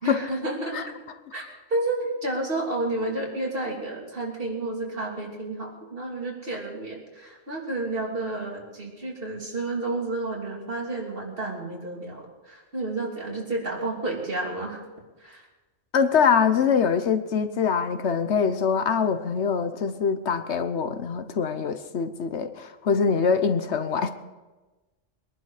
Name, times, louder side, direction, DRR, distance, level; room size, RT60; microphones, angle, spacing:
voice 1, 0.0-1.0 1.3-14.8 15.2-15.5, right 2 dB, 50° right, -2 dB, 3.3 m, -31 dB
voice 2, 15.9-24.1, left 6 dB, 65° left, 9 dB, 1.1 m, -24 dB
22.5 x 11.0 x 4.9 m, 1.2 s
omnidirectional pair, 1.2 m